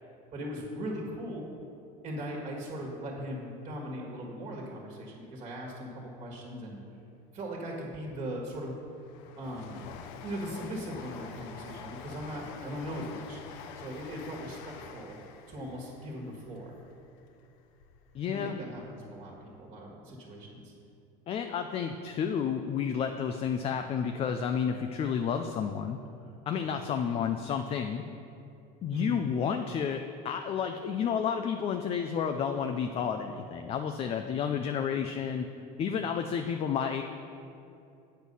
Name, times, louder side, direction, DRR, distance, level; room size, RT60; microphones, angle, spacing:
voice 1, 0.3-1.5 2.0-6.8 7.3-8.8 9.4-9.8 10.2-13.4 13.8-15.2 15.5-16.8 18.2-20.7 28.9-29.3, equal, 35° right, -1 dB, 1.7 m, -39 dB
Train, 8.0-18.2 18.6-19.5 19.8-19.9, left 6 dB, 70° left, 0.7 m, -47 dB
voice 2, 18.1-18.6 21.3-26.0 26.5-28.0 28.8-35.5 35.8-37.0, left 7 dB, 35° left, 6 dB, 0.4 m, -31 dB
8.2 x 6.3 x 5.4 m, 2.7 s
supercardioid pair, 125°, 18 cm